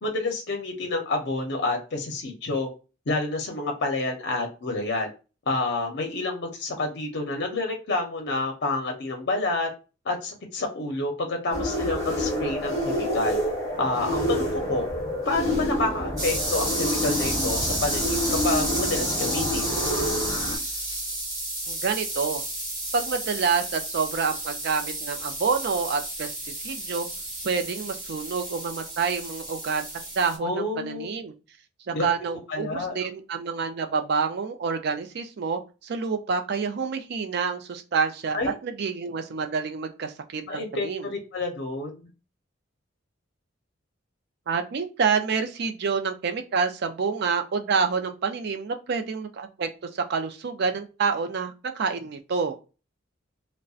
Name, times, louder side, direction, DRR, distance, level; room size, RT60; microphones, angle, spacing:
voice 1, 0.0-2.7 3.1-5.1 5.5-9.7 10.0-13.4 13.8-14.9 15.2-19.8 30.4-31.1 31.9-32.1 32.5-33.0 38.3-38.5 40.4-42.0, left 2 dB, 60° left, 3 dB, 0.6 m, -29 dB
sound 1, 11.5-20.6, equal, 15° left, 0.9 m, -28 dB
sound 2, 16.2-30.4, right 1 dB, 20° right, 1.2 m, -31 dB
voice 2, 21.7-22.4 22.9-27.1 27.4-29.8 30.2-31.3 31.9-38.4 38.6-41.1 44.5-52.6, right 5 dB, 55° right, 7 dB, 0.4 m, -28 dB
2.6 x 2.1 x 2.4 m, 0.32 s
head